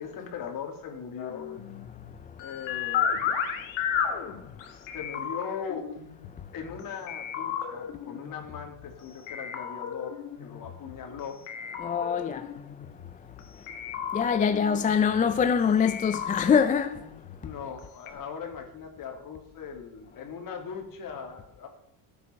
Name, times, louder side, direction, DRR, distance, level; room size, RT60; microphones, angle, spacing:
voice 1, 0.0-1.5 2.4-3.4 4.5-5.9 6.5-11.5 17.4-21.7, left 6 dB, 45° left, 2.8 m, -39 dB
sound 1, 1.2-6.8 7.1-8.9 9.3-11.2 11.5-13.4 13.7-15.5 15.9-17.8 18.1-18.2, left 8 dB, 80° left, 2.1 m, -34 dB
voice 2, 11.8-12.4 14.1-17.0, left 7 dB, 20° left, 0.4 m, -24 dB
14.5 x 8.2 x 5.9 m
cardioid pair, 155°, 45 cm